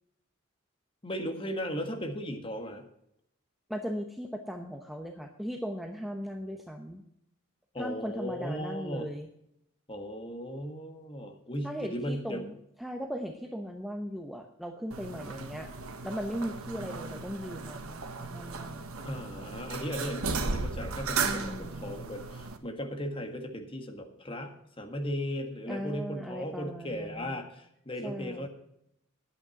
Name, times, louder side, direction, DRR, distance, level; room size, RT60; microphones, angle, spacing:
voice 1, 1.0-2.8 7.7-9.1 9.9-12.4 19.0-28.5, equal, 25° left, 4 dB, 1.6 m, -37 dB
voice 2, 3.7-7.0 7.8-9.3 11.6-12.5 12.8-15.7 16.0-18.9 21.2-22.0 25.7-27.4 28.0-28.5, equal, ahead, 3 dB, 0.7 m, -38 dB
sound 1, 14.9-22.6, right 4 dB, 80° right, 1.3 m, -36 dB
11.0 x 8.9 x 5.8 m, 0.77 s
head